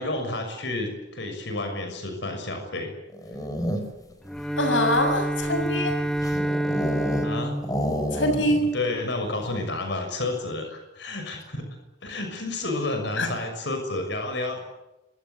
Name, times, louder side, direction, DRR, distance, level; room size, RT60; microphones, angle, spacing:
voice 1, 0.0-2.9 5.4-5.7 7.2-7.6 8.7-11.7 12.0-14.6, left 2 dB, 65° left, 5 dB, 6.3 m, -30 dB
sound 1, 3.1-4.1 4.8-7.3 7.6-8.7 9.0-9.1 9.4-9.7, equal, 20° left, 4.8 m, -30 dB
Bowed string instrument, 4.2-8.8, right 1 dB, 5° left, 1.2 m, -28 dB
voice 2, 4.6-6.0 8.1-8.6 13.2-13.3, left 1 dB, 80° left, 7 dB, 6.6 m, -24 dB
27.0 x 24.0 x 8.3 m, 0.95 s
head